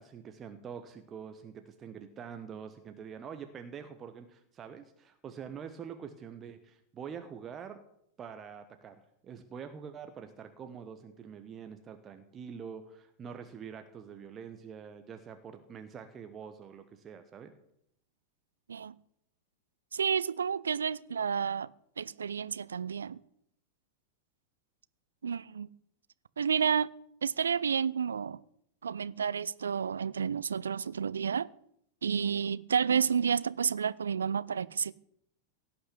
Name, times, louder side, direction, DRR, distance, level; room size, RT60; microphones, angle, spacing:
voice 1, 0.0-7.8 8.2-17.5, right 7 dB, 25° right, 1.2 m, -45 dB
voice 2, 19.9-21.7 22.0-23.2 25.2-25.7 26.4-26.9 27.2-28.4 28.8-31.5 32.0-34.9, right 7 dB, 70° right, 0.4 m, -30 dB
17.5 x 6.0 x 9.7 m
figure-of-eight pair, 90°, 0 cm